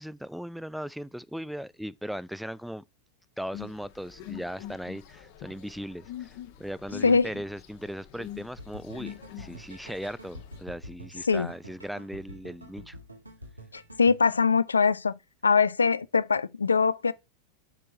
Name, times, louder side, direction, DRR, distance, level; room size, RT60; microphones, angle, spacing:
voice 1, 0.0-2.8 3.4-6.3 6.6-13.0, equal, ahead, 0.3 m, -38 dB
sound 1, 3.5-10.6, left 11 dB, 50° left, 1.2 m, -44 dB
sound 2, 8.6-14.4, equal, 85° right, 1.8 m, -47 dB
voice 2, 13.7-15.1 15.4-17.1, left 5 dB, 75° left, 0.4 m, -22 dB
7.2 x 6.1 x 4.6 m
figure-of-eight pair, 90°, 0 cm